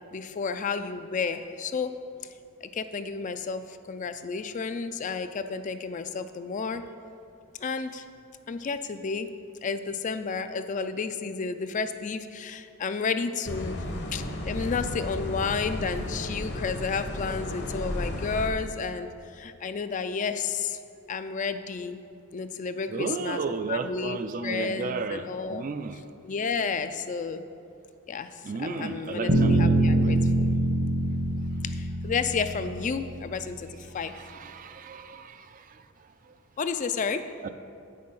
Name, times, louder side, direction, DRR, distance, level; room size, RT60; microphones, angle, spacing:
voice 1, 0.1-1.9 2.6-6.8 7.6-8.0 8.5-9.3 9.6-13.8 14.1-20.8 21.1-22.0 22.3-25.6 25.9-27.4 28.1-30.5 31.6-34.1 36.6-37.3, left 5 dB, 35° left, 10 dB, 0.3 m, -31 dB
sound 1, 13.5-18.5, left 1 dB, 50° left, 0.9 m, -33 dB
voice 2, 22.9-25.2 25.5-25.9 28.4-30.2 34.4-35.4 37.4-37.5, right 4 dB, 40° right, 10 dB, 0.3 m, -33 dB
sound 2, 29.3-33.3, right 1 dB, 60° right, 1.2 m, -24 dB
8.5 x 6.5 x 5.5 m, 2.5 s
head